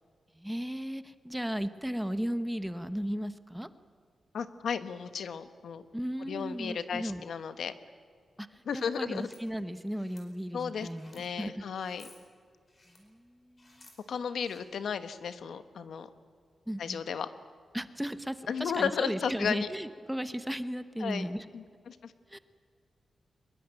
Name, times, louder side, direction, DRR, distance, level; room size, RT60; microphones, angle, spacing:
voice 1, 0.3-3.7 5.9-7.2 8.4-11.6 12.9-13.9 16.7-17.0 17.7-21.5 22.3-22.4, equal, 5° right, 12 dB, 0.8 m, -36 dB
voice 2, 4.3-5.8 6.3-7.7 8.7-9.3 10.5-12.1 14.1-16.1 16.8-17.3 18.5-19.7 21.0-21.3 21.5-22.1, left 6 dB, 75° left, 11 dB, 1.3 m, -34 dB
sound 1, 9.1-9.4 9.9-10.2 10.8-11.3 11.7-12.2 12.7-13.0 13.6-14.0 14.4-14.6, left 2 dB, 30° left, 4.7 m, -58 dB
23.5 x 21.5 x 8.9 m, 2.2 s
wide cardioid pair, 175°, 0 cm